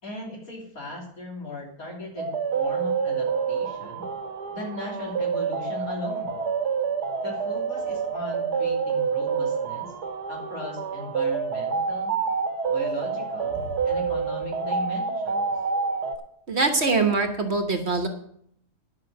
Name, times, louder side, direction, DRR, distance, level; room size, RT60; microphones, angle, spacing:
voice 1, 0.0-4.1 4.5-6.4 7.2-9.9 10.3-12.2 12.7-13.6 13.8-15.5, left 1 dB, 65° left, -1 dB, 3.6 m, -38 dB
sound 1, 2.2-16.1, right 5 dB, 85° right, 1.9 m, -28 dB
voice 2, 16.5-18.1, right 3 dB, 45° right, 6 dB, 1.3 m, -23 dB
10.5 x 6.0 x 7.7 m, 0.66 s
omnidirectional pair, 1.6 m